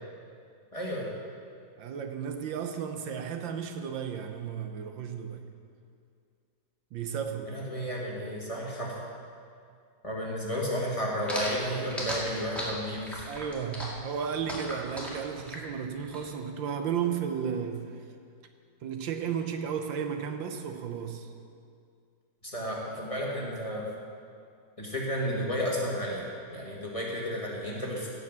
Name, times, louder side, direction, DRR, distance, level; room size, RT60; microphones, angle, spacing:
voice 1, 0.7-1.1 7.4-9.0 10.0-13.3 22.4-23.9 24.8-28.1, equal, 20° left, -4 dB, 1.8 m, -32 dB
voice 2, 1.8-5.4 6.9-7.6 11.7-12.0 13.2-17.9 18.8-21.3, right 7 dB, 80° right, 6 dB, 1.6 m, -34 dB
sound 1, 11.3-16.2, equal, ahead, 2.0 m, -36 dB
16.0 x 5.8 x 7.3 m, 2.3 s
omnidirectional pair, 2.0 m